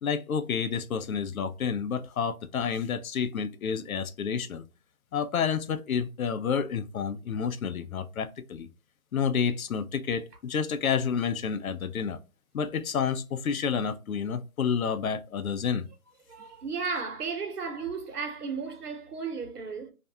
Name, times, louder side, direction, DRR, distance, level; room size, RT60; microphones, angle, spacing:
voice 1, 0.0-4.6 5.1-8.7 9.1-12.2 12.5-15.9, left 6 dB, 70° left, 0.5 m, -29 dB
voice 2, 16.3-19.9, right 5 dB, 85° right, 1.0 m, -34 dB
2.5 x 2.2 x 2.6 m
hypercardioid pair, 170°, 45 cm